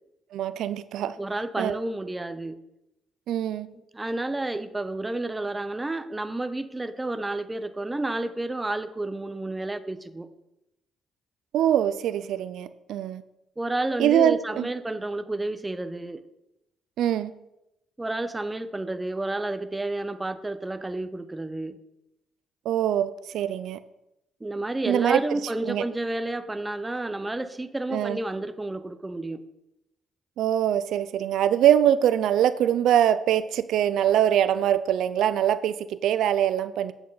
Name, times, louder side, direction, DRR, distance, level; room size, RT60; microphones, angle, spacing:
voice 1, 0.3-1.1 1.6-1.8 3.3-3.7 11.5-13.2 14.0-14.7 17.0-17.3 22.7-23.8 24.9-25.2 25.7-25.8 27.9-28.2 30.4-36.9, right 10 dB, 80° right, 14 dB, 0.3 m, -23 dB
voice 2, 1.2-2.6 3.7-10.3 13.6-16.2 18.0-21.8 24.4-29.4, right 2 dB, 15° right, 11 dB, 0.6 m, -30 dB
8.3 x 7.9 x 3.9 m, 0.90 s
cardioid pair, 90°, 0 cm